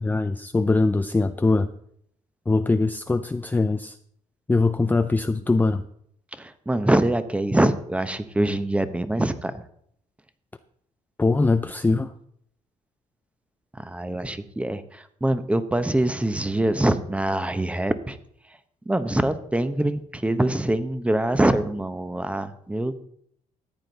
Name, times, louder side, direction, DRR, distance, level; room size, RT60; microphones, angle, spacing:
voice 1, 0.0-1.7 2.5-4.0 4.5-5.8 11.2-12.1, left 3 dB, 10° left, 9 dB, 0.5 m, -22 dB
voice 2, 6.3-9.6 13.8-18.2 18.9-23.0, right 1 dB, 10° right, 12 dB, 0.9 m, -24 dB
14.0 x 9.0 x 4.0 m, 0.67 s
cardioid pair, 105°, 14 cm